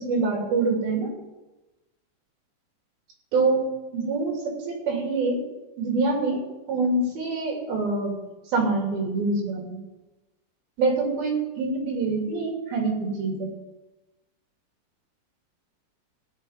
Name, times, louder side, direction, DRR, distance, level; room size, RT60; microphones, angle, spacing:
voice 1, 0.1-1.1 3.3-5.4 5.8-6.4 6.7-8.1 8.5-9.8 10.8-13.5, right 3 dB, 55° right, 0 dB, 4.6 m, -25 dB
17.0 x 6.3 x 9.5 m, 1.1 s
omnidirectional pair, 5.4 m